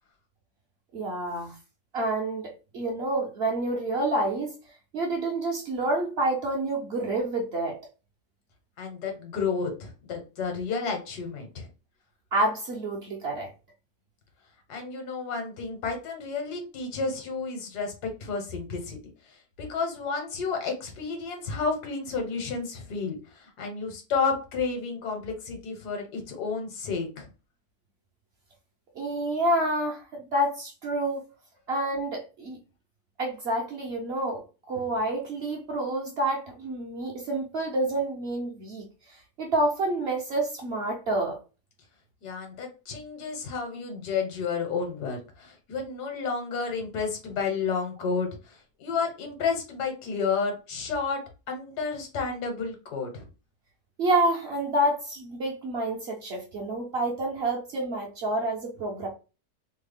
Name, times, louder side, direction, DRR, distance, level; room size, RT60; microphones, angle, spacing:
voice 1, 0.9-1.5 1.9-4.5 4.9-7.8 12.3-13.5 28.9-31.2 31.7-32.6 33.2-38.9 39.4-41.4 54.0-59.1, right 1 dB, 55° right, 0.7 m, -28 dB
voice 2, 8.8-11.7 14.7-19.0 19.6-27.3 42.2-51.2 51.5-53.3, left 5 dB, 85° left, 1.5 m, -31 dB
3.2 x 2.1 x 3.3 m
omnidirectional pair, 1.7 m